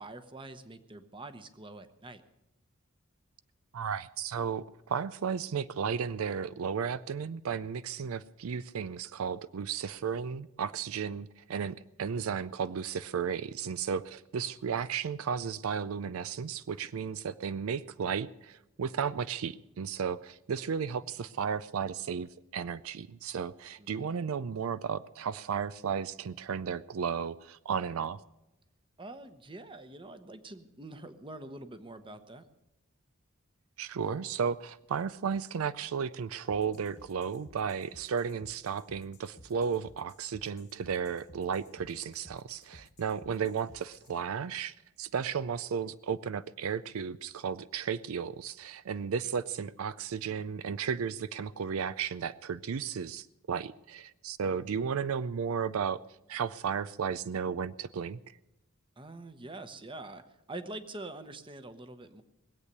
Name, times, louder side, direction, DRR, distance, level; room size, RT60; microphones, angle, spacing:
voice 1, 0.0-2.2 23.8-24.2 29.0-32.4 43.3-43.4 59.0-62.2, right 2 dB, 25° right, 10 dB, 0.9 m, -45 dB
voice 2, 3.7-28.2 33.8-56.0 56.3-58.2, right 6 dB, 85° right, 16 dB, 0.4 m, -34 dB
sound 1, 36.5-44.2, left 1 dB, 35° left, 1.3 m, -56 dB
20.5 x 8.2 x 6.7 m, 0.93 s
head